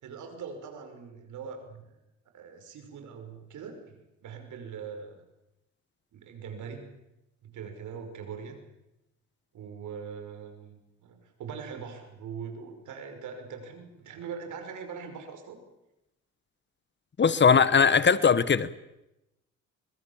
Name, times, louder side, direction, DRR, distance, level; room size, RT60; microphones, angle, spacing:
voice 1, 0.0-2.0 2.3-5.2 6.1-6.9 7.4-8.6 9.5-15.6, right 6 dB, 75° right, 5.8 m, -42 dB
voice 2, 17.2-18.9, left 6 dB, 35° left, 1.2 m, -20 dB
25.0 x 22.0 x 7.4 m
cardioid pair, 90°, 30 cm